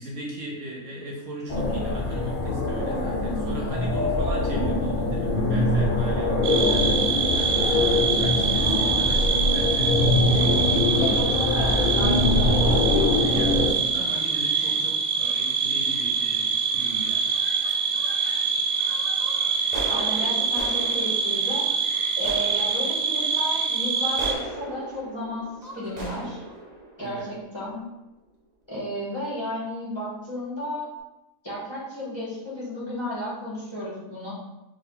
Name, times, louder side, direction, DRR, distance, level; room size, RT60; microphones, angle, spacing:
voice 1, 0.0-10.1 12.2-17.3 27.0-27.3, right 1 dB, 65° right, -2 dB, 1.0 m, -38 dB
sound 1, 1.5-13.7, left 2 dB, 45° left, 0.7 m, -23 dB
sound 2, 6.4-24.4, right 6 dB, 85° right, 1.1 m, -25 dB
voice 2, 11.0-12.8 19.9-21.6 22.2-26.4 27.0-27.8 28.7-30.9 31.4-34.3, left 1 dB, 20° left, -8 dB, 1.2 m, -33 dB
sound 3, 12.4-12.7 13.2-13.5 14.2-14.4 14.7-14.8 15.1-15.5 16.1-16.4 16.7-18.4 18.8-28.0, right 1 dB, 35° right, 0.7 m, -40 dB
4.4 x 2.6 x 3.8 m, 0.96 s
omnidirectional pair, 1.5 m